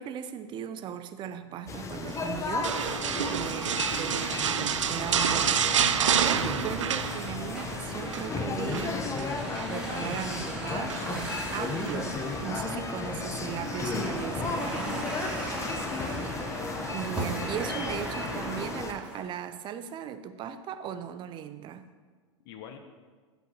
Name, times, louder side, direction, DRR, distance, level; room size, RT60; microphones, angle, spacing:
voice 1, 0.0-2.8 3.3-9.0 9.7-12.2 12.4-15.1 16.9-21.9, right 9 dB, 30° right, 11 dB, 0.7 m, -37 dB
sound 1, 1.7-18.9, left 4 dB, 20° left, 1.0 m, -34 dB
sound 2, 2.6-7.6 7.9-8.3 8.7-9.7 10.9-11.3 11.8-12.0, right 8 dB, 75° right, 0.5 m, -28 dB
voice 2, 3.3-3.6 15.6-16.7 22.4-22.8, left 8 dB, 50° left, 5 dB, 1.1 m, -47 dB
sound 3, 4.3-19.2, right 1 dB, 5° right, 2.4 m, -38 dB
15.5 x 5.8 x 4.2 m, 1.5 s
hypercardioid pair, 100°, 16 cm